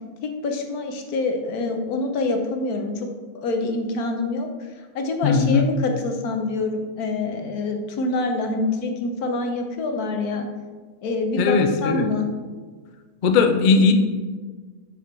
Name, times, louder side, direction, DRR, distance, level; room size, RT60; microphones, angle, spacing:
voice 1, 0.2-3.1 3.3-4.5 4.9-10.5 11.0-12.3, left 3 dB, 85° left, 4 dB, 1.3 m, -26 dB
voice 2, 5.2-5.6 11.4-12.1 13.2-13.9, left 5 dB, 60° left, 6 dB, 0.5 m, -18 dB
6.4 x 5.1 x 4.4 m, 1.4 s
omnidirectional pair, 1.5 m